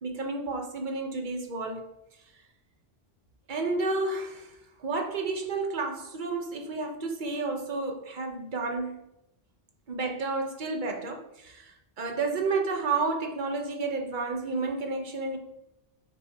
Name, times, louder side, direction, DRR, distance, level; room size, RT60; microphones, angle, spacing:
voice 1, 0.0-1.9 3.5-4.5 4.8-9.0 9.9-15.4, right 3 dB, 50° right, 1.1 m, -31 dB
6.9 x 4.9 x 3.5 m
omnidirectional pair, 1.0 m